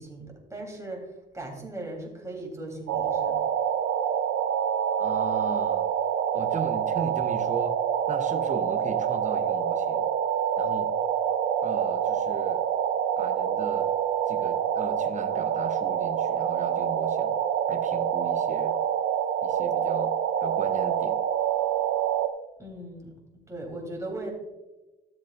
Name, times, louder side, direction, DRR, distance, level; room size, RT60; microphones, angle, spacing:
voice 1, 0.0-3.4 22.6-23.1 23.5-24.3, right 2 dB, 15° right, -1 dB, 3.5 m, -38 dB
sound 1, 2.9-22.3, right 9 dB, 80° right, 0.6 m, -26 dB
voice 2, 5.0-5.9 6.3-7.8 8.1-10.1 10.6-10.9 11.6-12.6 13.2-13.9 14.3-17.4 17.7-18.8 19.4-20.1 20.4-21.2, right 5 dB, 40° right, 8 dB, 0.9 m, -37 dB
14.0 x 7.3 x 2.6 m, 1.1 s
cardioid pair, 90°, 20 cm